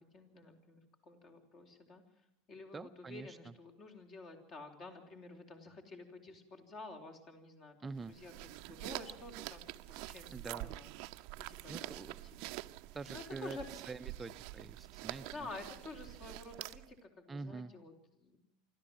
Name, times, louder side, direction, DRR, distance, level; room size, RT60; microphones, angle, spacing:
voice 1, 0.0-2.0 2.5-10.9 11.4-11.9 13.1-13.7 15.2-18.4, left 3 dB, 40° left, 4 dB, 3.9 m, -50 dB
voice 2, 2.7-3.5 7.8-8.1 10.3-10.7 11.7-12.1 12.9-13.6 13.8-15.3 17.3-17.7, right 4 dB, 20° right, 10 dB, 0.7 m, -45 dB
sound 1, 8.0-17.0, right 18 dB, 55° right, 0.6 m, -46 dB
25.5 x 13.5 x 7.7 m, 0.84 s
figure-of-eight pair, 80°, 0 cm